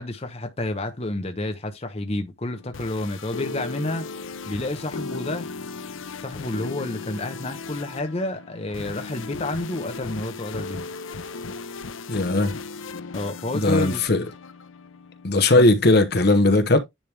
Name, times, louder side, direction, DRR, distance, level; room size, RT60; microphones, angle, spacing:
voice 1, 0.0-4.1 4.5-5.5 6.2-10.9 13.1-14.2 15.6-15.7, left 2 dB, 30° left, 0.9 m, -30 dB
sound 1, 2.5-15.3, left 4 dB, 85° left, 0.6 m, -36 dB
voice 2, 12.1-12.5 13.5-14.2 15.2-16.8, left 2 dB, 55° left, 0.9 m, -18 dB
10.0 x 3.5 x 3.3 m
head